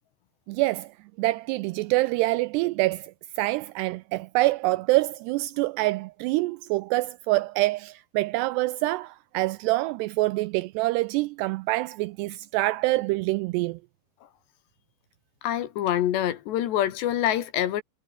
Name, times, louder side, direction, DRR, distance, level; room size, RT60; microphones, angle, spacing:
voice 1, 0.5-0.9 1.2-13.8, right 20 dB, 85° right, 2.4 m, -26 dB
voice 2, 15.4-17.8, left 11 dB, 75° left, 3.7 m, -25 dB
omnidirectional pair, 5.2 m